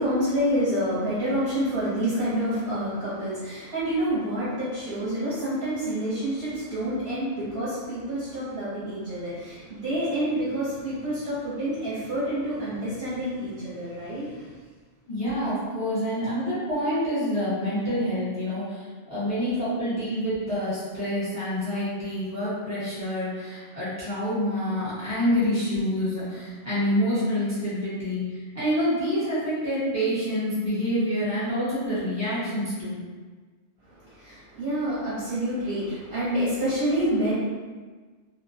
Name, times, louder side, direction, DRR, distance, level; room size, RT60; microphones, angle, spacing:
voice 1, 0.0-14.3 34.0-37.3, equal, 50° right, -11 dB, 0.8 m, -28 dB
voice 2, 15.1-33.0, equal, 15° left, -11 dB, 0.7 m, -27 dB
2.3 x 2.1 x 2.6 m, 1.4 s
omnidirectional pair, 1.4 m